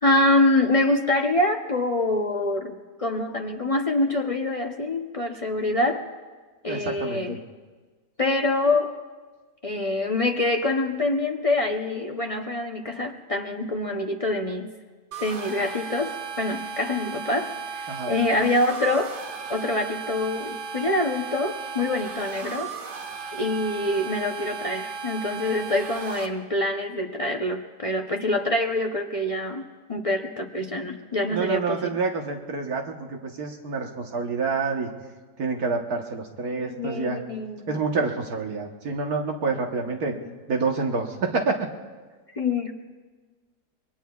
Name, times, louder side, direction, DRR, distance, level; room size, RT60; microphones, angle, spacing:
voice 1, 0.0-6.0 6.6-7.4 8.2-8.9 9.6-14.7 15.2-19.1 19.5-22.7 23.3-29.6 29.9-32.0 36.5-37.7 40.1-40.3 42.3-42.7, left 2 dB, 50° left, 2 dB, 0.4 m, -25 dB
voice 2, 6.7-7.4 17.9-18.2 31.3-34.9 35.4-37.2 37.7-40.2 40.5-41.7, right 4 dB, 65° right, 2 dB, 1.6 m, -28 dB
sound 1, 15.1-26.3, right 6 dB, 80° right, 1.8 m, -36 dB
26.5 x 22.5 x 2.4 m, 1.4 s
omnidirectional pair, 1.8 m